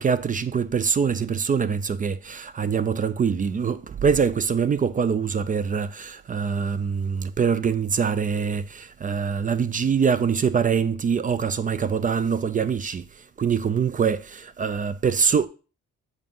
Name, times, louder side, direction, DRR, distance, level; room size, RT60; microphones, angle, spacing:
voice 1, 0.0-13.0 13.4-15.5, right 6 dB, 30° right, 0.4 m, -24 dB
7.3 x 2.5 x 5.4 m
cardioid pair, 90°, 30 cm